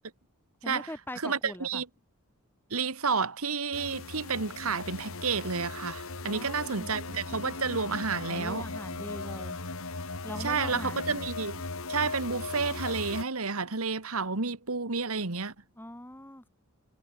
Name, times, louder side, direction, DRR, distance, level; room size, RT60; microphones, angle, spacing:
voice 1, 0.6-1.8 6.2-6.9 8.3-9.6 10.2-11.2 15.8-16.5, left 1 dB, 10° left, 2.5 m, -42 dB
voice 2, 1.2-1.9 2.7-8.7 10.4-11.6 11.9-15.5, right 5 dB, 80° right, 1.9 m, -30 dB
sound 1, 3.7-13.2, left 3 dB, 70° left, 2.6 m, -38 dB
head